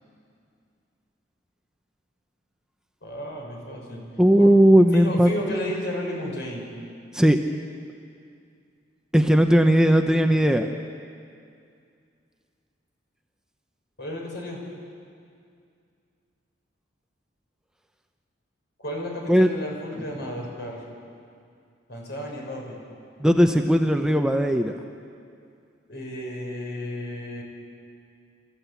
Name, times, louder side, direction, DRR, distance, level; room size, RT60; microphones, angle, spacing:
voice 1, 3.0-4.1 4.4-4.5 4.9-6.7 14.0-14.6 18.8-20.8 21.9-22.8 25.9-27.4, left 1 dB, 60° left, -1 dB, 5.9 m, -33 dB
voice 2, 4.2-5.3 7.1-7.4 9.1-10.7 19.3-19.5 23.2-24.7, equal, 5° right, 5 dB, 0.7 m, -17 dB
28.5 x 14.5 x 8.3 m, 2.4 s
head